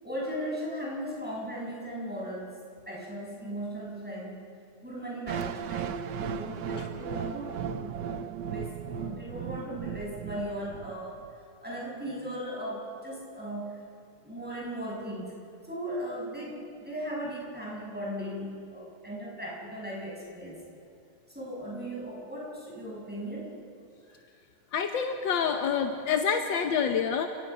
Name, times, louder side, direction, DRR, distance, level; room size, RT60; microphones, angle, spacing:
voice 1, 0.0-2.5 2.9-4.4 4.8-11.2 11.6-13.8 14.2-15.3 15.7-20.6 21.3-23.5, equal, 5° right, -5 dB, 6.2 m, -37 dB
sound 1, 5.3-11.3, right 7 dB, 70° right, 1.4 m, -36 dB
voice 2, 24.7-27.3, left 7 dB, 85° left, 5 dB, 1.8 m, -27 dB
30.0 x 18.0 x 5.6 m, 2.5 s
omnidirectional pair, 2.0 m